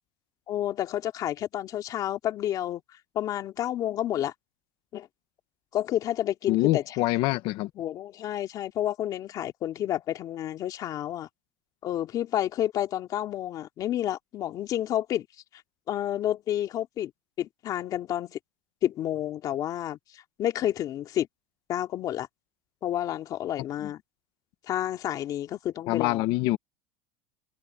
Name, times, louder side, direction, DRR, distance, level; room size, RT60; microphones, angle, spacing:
voice 1, 0.5-2.8 3.1-4.3 4.9-5.1 5.7-7.0 7.8-11.3 11.8-15.3 15.9-17.1 17.4-18.4 18.8-21.3 21.7-22.3 22.8-24.0 24.7-26.2, left 12 dB, 40° left, 2.5 m, -30 dB
voice 2, 6.5-7.7 25.9-26.6, left 19 dB, 55° left, 1.3 m, -25 dB
cardioid pair, 150°, 10 cm